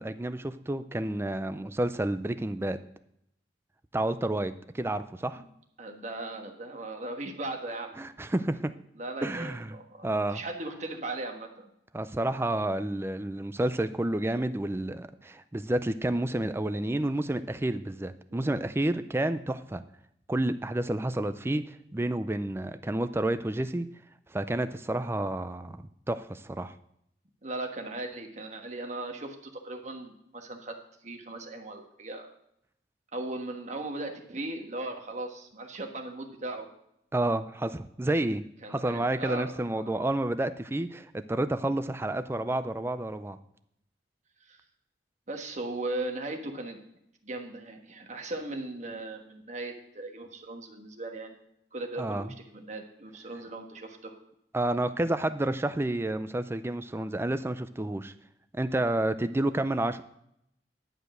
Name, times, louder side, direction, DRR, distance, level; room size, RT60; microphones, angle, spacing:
voice 1, 0.0-2.8 3.9-5.4 8.0-8.7 9.2-9.8 10.0-10.4 11.9-19.8 20.3-23.9 24.3-25.8 26.1-26.7 37.1-38.4 38.7-43.4 52.0-52.3 54.5-58.1 58.5-60.0, right 1 dB, 15° right, 11 dB, 0.4 m, -30 dB
voice 2, 5.8-8.0 9.0-11.7 18.3-18.4 27.4-30.8 31.0-32.3 33.1-36.7 38.6-39.8 44.4-44.6 45.3-46.8 47.2-51.4 51.7-54.1, right 2 dB, 40° right, 4 dB, 1.4 m, -38 dB
11.0 x 5.1 x 7.8 m, 0.75 s
head